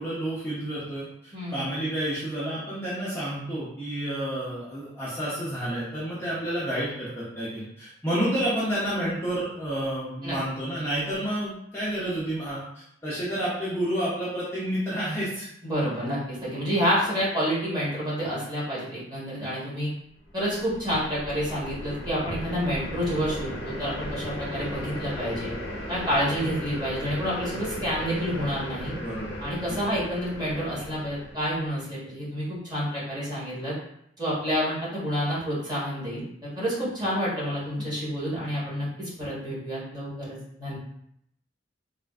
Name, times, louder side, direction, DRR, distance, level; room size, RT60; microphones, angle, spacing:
voice 1, 0.0-15.5 29.0-29.4 29.7-29.8, right 1 dB, 15° left, -10 dB, 0.6 m, -30 dB
voice 2, 15.6-19.9 20.3-25.5 25.9-28.9 29.4-33.7 34.2-36.2 36.6-40.8, equal, 20° right, -9 dB, 1.2 m, -29 dB
sound 1, 20.3-31.7, equal, 70° left, 0.8 m, -36 dB
3.3 x 2.4 x 2.3 m, 0.74 s
head